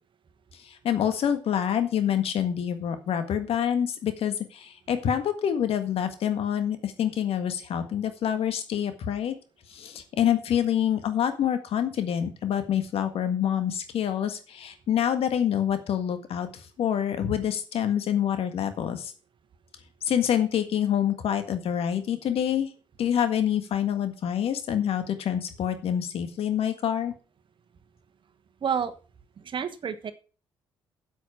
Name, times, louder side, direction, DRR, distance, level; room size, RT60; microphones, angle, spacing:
voice 1, 0.5-9.3 9.7-19.1 20.0-22.7 23.0-27.1, left 9 dB, 65° left, 9 dB, 1.7 m, -26 dB
voice 2, 28.6-28.9 29.4-30.1, right 7 dB, 50° right, 10 dB, 1.3 m, -29 dB
8.2 x 7.8 x 6.0 m, 0.37 s
hypercardioid pair, 50°, 11 cm